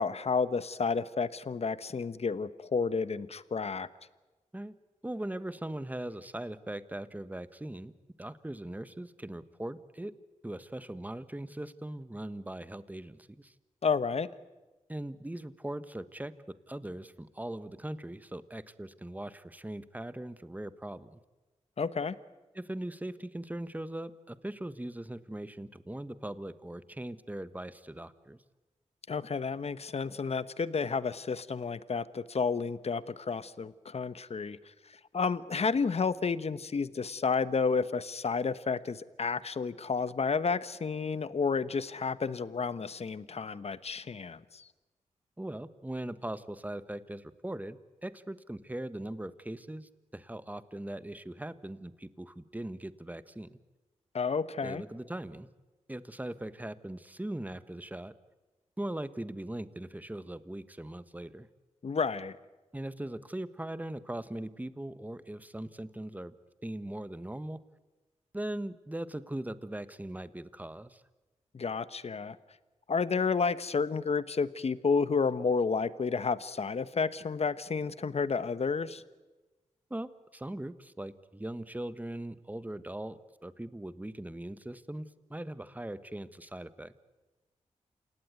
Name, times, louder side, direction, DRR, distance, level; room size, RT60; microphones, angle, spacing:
voice 1, 0.0-3.9 13.8-14.3 21.8-22.2 29.1-34.6 35.1-44.7 54.1-54.8 61.8-62.4 71.5-72.4 72.9-79.0, left 5 dB, 55° left, 15 dB, 1.1 m, -31 dB
voice 2, 5.0-7.9 8.2-10.1 10.4-13.5 14.9-21.2 22.5-28.4 45.4-53.6 54.6-55.5 55.9-58.1 58.8-61.5 62.7-66.3 66.6-67.6 68.3-71.0 79.9-86.9, right 1 dB, 10° right, 13 dB, 1.4 m, -40 dB
28.0 x 18.0 x 9.5 m, 1.2 s
cardioid pair, 50°, 13 cm